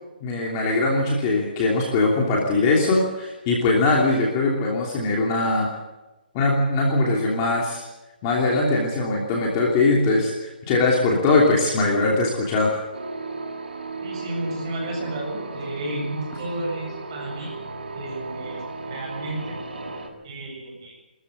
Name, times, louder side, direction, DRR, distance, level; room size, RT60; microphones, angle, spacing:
voice 1, 0.2-5.7 6.3-7.8 8.2-12.8, left 2 dB, 20° left, -2 dB, 3.0 m, -21 dB
sound 1, 12.9-20.1, right 3 dB, 85° right, 6.3 m, -35 dB
voice 2, 14.0-17.5 17.9-19.6 20.2-21.0, right 1 dB, 30° right, -1 dB, 8.0 m, -32 dB
24.0 x 14.0 x 8.7 m, 1.1 s
hypercardioid pair, 170°, 5 cm